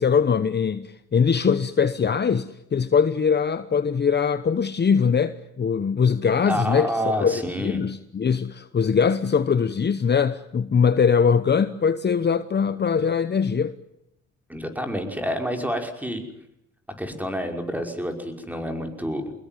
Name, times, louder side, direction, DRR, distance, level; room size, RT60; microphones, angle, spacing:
voice 1, 0.0-6.9 7.2-13.7, left 6 dB, 35° left, 1.0 m, -22 dB
voice 2, 6.5-7.8 14.5-16.2 17.0-19.3, equal, 5° right, 5.5 m, -28 dB
25.0 x 21.0 x 9.2 m
cardioid pair, 90°, 30 cm